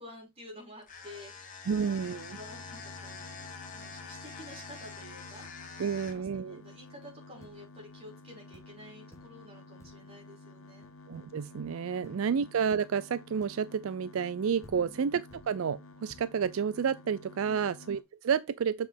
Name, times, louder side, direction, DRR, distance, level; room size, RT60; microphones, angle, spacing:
voice 1, 0.0-2.0 2.3-5.5 5.8-10.9 12.0-12.3 14.7-15.0 17.4-17.7, left 1 dB, 30° right, 5.4 m, -51 dB
sound 1, 0.8-6.4, left 4 dB, 40° left, 1.7 m, -46 dB
voice 2, 1.7-2.4 5.8-6.6 11.1-18.9, right 6 dB, 70° right, 0.4 m, -30 dB
sound 2, 2.0-18.0, left 2 dB, 65° left, 1.0 m, -52 dB
sound 3, 6.0-6.5 7.4-7.7 8.2-8.3 8.5-8.8 9.1-9.5 9.8-10.2 10.8-11.4 12.0-12.3 13.4-13.8 14.4-14.5 14.6-15.6 16.1-16.4, left 1 dB, 15° left, 1.2 m, -56 dB
7.4 x 5.9 x 3.4 m
head